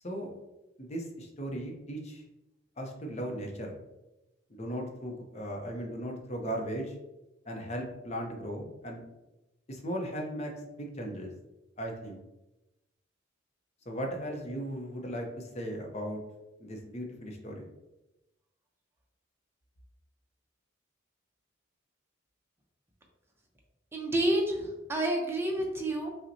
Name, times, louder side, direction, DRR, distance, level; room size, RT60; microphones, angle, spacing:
voice 1, 0.8-2.2 2.8-3.7 4.5-6.9 7.5-9.0 9.7-10.5 10.8-11.3 11.8-12.2 13.9-16.2 16.6-17.7, equal, 35° left, 1 dB, 0.6 m, -37 dB
voice 2, 23.9-26.1, right 1 dB, 10° right, 0 dB, 0.6 m, -29 dB
5.4 x 2.1 x 2.6 m, 0.98 s
head